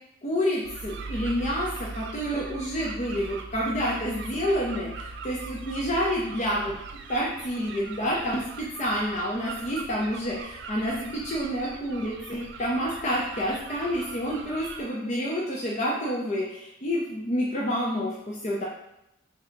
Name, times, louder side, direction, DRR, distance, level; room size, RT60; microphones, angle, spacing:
voice 1, 0.2-6.8 7.1-18.6, equal, 35° left, -4 dB, 0.5 m, -28 dB
sound 1, 0.6-14.8, right 4 dB, 60° right, 0.4 m, -40 dB
3.3 x 2.7 x 3.7 m, 0.85 s
head